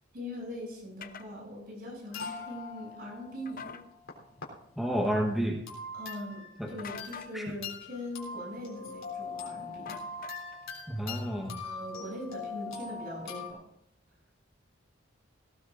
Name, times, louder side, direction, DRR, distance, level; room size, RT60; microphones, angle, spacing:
voice 1, 0.1-3.8 5.9-10.0 11.6-13.6, left 1 dB, 50° right, -1 dB, 7.5 m, -41 dB
sound 1, 1.0-1.3 3.5-3.8 6.8-7.3 9.9-10.6, left 6 dB, 45° left, 0.7 m, -44 dB
sound 2, 2.1-4.4 4.9-5.1 5.7-7.3 7.6-13.5, left 4 dB, 80° left, 3.6 m, -42 dB
voice 2, 4.8-5.6 6.6-6.7 7.3-7.4 10.9-11.6, equal, ahead, 0 dB, 1.2 m, -30 dB
18.0 x 17.5 x 2.6 m, 0.75 s
head